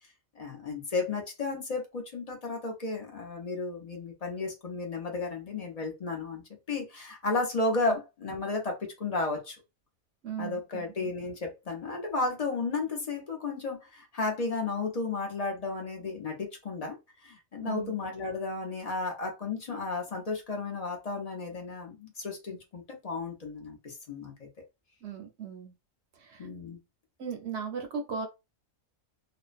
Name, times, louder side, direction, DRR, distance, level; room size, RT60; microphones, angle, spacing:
voice 1, 0.4-6.4 6.7-9.6 10.4-17.0 17.2-24.5 26.4-26.8, left 3 dB, 45° left, 0.5 m, -33 dB
voice 2, 10.2-11.1 17.6-17.9 25.0-25.7 26.2-26.5 27.2-28.3, right 6 dB, 60° right, 0.8 m, -37 dB
2.5 x 2.0 x 2.4 m
omnidirectional pair, 1.4 m